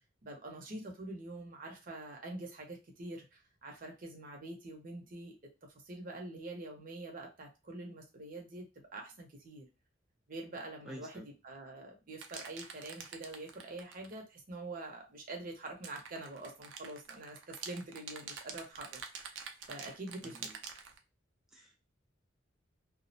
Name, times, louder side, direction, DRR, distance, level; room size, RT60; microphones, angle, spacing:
voice 1, 0.2-5.3 5.8-8.7 8.9-9.7 10.3-19.4 19.7-20.5, right 2 dB, 50° right, 1 dB, 0.7 m, -45 dB
voice 2, 10.9-11.3 20.2-20.5 21.5-21.8, equal, 5° right, 0 dB, 0.4 m, -49 dB
sound 1, 12.2-14.2 15.7-21.0, right 6 dB, 90° right, 0.5 m, -46 dB
2.3 x 2.1 x 2.6 m, 0.27 s
head